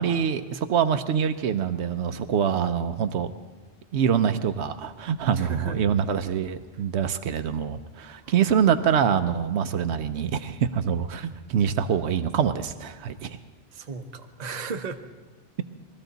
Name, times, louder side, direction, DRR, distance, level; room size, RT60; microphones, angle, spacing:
voice 1, 0.0-3.3 3.9-13.4, right 8 dB, 80° right, 9 dB, 0.9 m, -25 dB
voice 2, 5.3-5.8 8.2-8.6 13.7-15.0, right 4 dB, 45° right, 6 dB, 0.8 m, -36 dB
20.5 x 13.5 x 4.0 m, 1.3 s
omnidirectional pair, 1.1 m